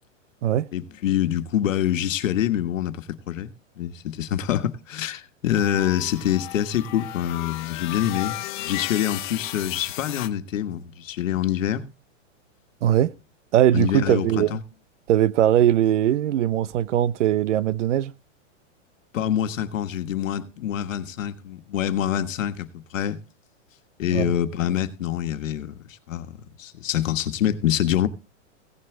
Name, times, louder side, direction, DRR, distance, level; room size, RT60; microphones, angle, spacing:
voice 1, 0.7-3.5 3.8-8.3 8.6-11.9 13.7-14.6 19.1-23.2 24.0-28.1, left 10 dB, 85° left, 1.5 m, -26 dB
sound 1, 5.5-10.3, left 16 dB, 40° left, 0.7 m, -34 dB
voice 2, 12.8-13.1 13.5-14.5 15.1-18.1 24.1-24.3, right 11 dB, 65° right, 0.8 m, -20 dB
16.5 x 8.0 x 3.8 m
supercardioid pair, 165°, 38 cm